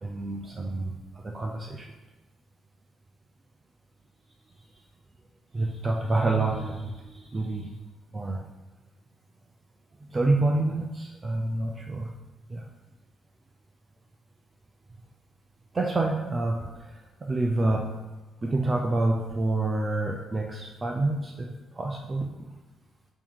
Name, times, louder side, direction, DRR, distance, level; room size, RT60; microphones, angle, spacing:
voice 1, 0.0-1.9 5.5-7.8 8.1-8.4 10.0-12.1 12.5-12.6 15.7-16.9 17.2-18.0 18.4-22.3, right 2 dB, 30° right, 1 dB, 0.6 m, -28 dB
6.8 x 3.0 x 5.5 m, 1.2 s
cardioid pair, 90°, 0 cm